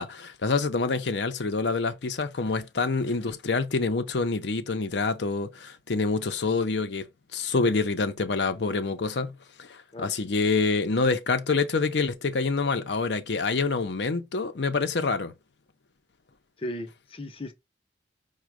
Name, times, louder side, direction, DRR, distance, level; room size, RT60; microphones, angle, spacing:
voice 1, 0.0-7.1 7.3-15.3, left 4 dB, 75° left, 0.7 m, -27 dB
voice 2, 16.6-17.5, left 1 dB, 30° left, 0.7 m, -36 dB
5.1 x 2.3 x 4.6 m
head